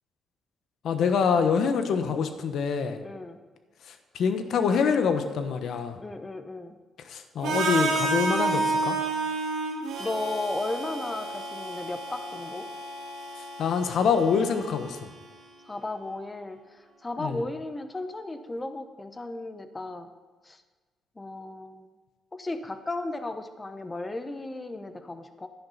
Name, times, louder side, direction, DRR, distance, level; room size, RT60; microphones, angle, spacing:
voice 1, 0.8-3.0 3.9-6.0 7.0-9.0 13.6-15.0 17.2-17.4, left 6 dB, 70° left, 8 dB, 1.0 m, -25 dB
voice 2, 3.0-3.4 6.0-6.8 10.0-12.7 15.7-20.1 20.4-20.6 21.2-21.9 22.3-25.5, left 2 dB, 20° left, 9 dB, 0.9 m, -35 dB
Harmonica, 7.4-15.3, right 3 dB, 80° right, 2.3 m, -31 dB
10.5 x 10.5 x 4.1 m, 1.3 s
cardioid pair, 90°, 0 cm